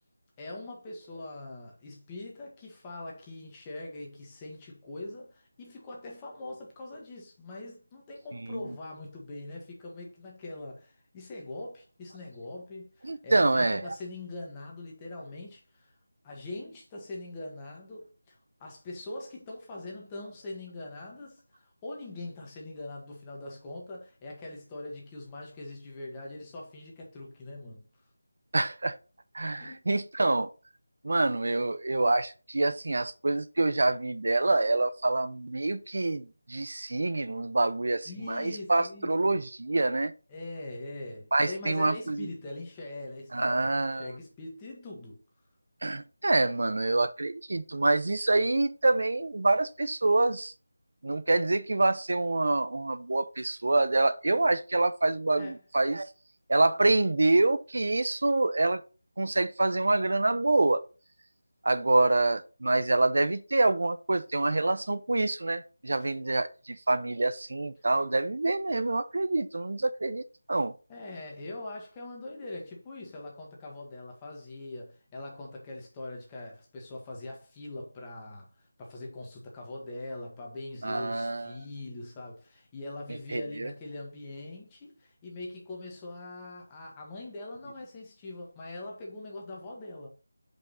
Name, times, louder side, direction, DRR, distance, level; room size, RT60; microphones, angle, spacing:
voice 1, 0.4-15.9 16.2-27.9 29.6-29.8 38.1-39.4 40.3-45.2 55.4-55.6 66.0-66.1 70.9-90.1, left 2 dB, 15° left, 1.6 m, -42 dB
voice 2, 13.0-13.9 28.5-29.0 29.3-30.5 31.0-40.1 41.3-42.3 43.3-44.1 45.8-50.5 51.0-56.1 56.5-58.8 59.2-60.8 61.6-70.2 70.5-70.7 80.8-81.5 83.3-83.7, right 2 dB, 60° right, 0.7 m, -26 dB
5.8 x 5.2 x 4.1 m
figure-of-eight pair, 165°, 0 cm